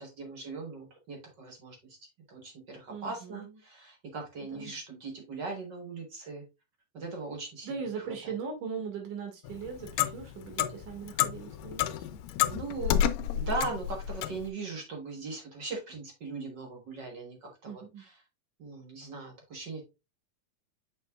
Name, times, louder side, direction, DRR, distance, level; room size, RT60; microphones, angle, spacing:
voice 1, 0.0-2.0 2.3-6.4 6.9-7.8 8.2-8.3 12.4-18.2 18.6-19.8, right 3 dB, 50° right, 1 dB, 1.3 m, -39 dB
voice 2, 2.9-3.4 4.5-4.7 7.6-12.2 17.6-18.0, right 6 dB, 75° right, 3 dB, 3.4 m, -39 dB
Clock, 9.4-14.5, left 11 dB, 90° left, 2.2 m, -30 dB
7.1 x 5.8 x 2.3 m, 0.26 s
omnidirectional pair, 3.7 m